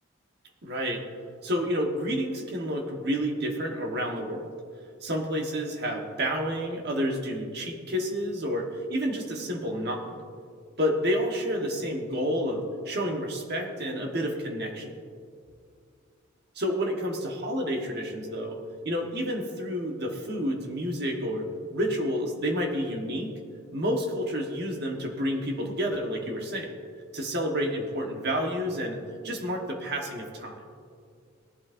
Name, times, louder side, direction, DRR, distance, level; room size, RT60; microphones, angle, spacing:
voice 1, 0.6-1.0 1.4-4.5 5.0-10.2 10.8-14.9 16.5-18.6 18.8-21.4 21.7-23.3 23.7-26.7 27.1-29.0 29.2-30.6, equal, 50° right, 1 dB, 1.4 m, -29 dB
18.5 x 11.5 x 2.6 m, 2.3 s
head